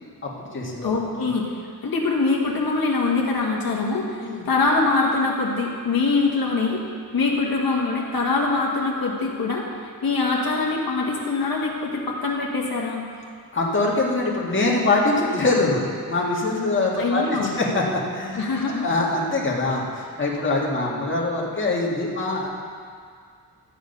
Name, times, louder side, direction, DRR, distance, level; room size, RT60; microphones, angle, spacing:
voice 1, 0.2-0.9 4.2-4.5 13.5-18.4 18.8-22.5, left 2 dB, 35° left, -4 dB, 1.8 m, -23 dB
voice 2, 0.8-1.5 1.8-6.8 7.1-13.0 17.0-17.5 18.3-18.8, left 3 dB, 70° left, -2 dB, 1.6 m, -23 dB
13.5 x 8.9 x 5.4 m, 2.1 s
wide cardioid pair, 160°, 37 cm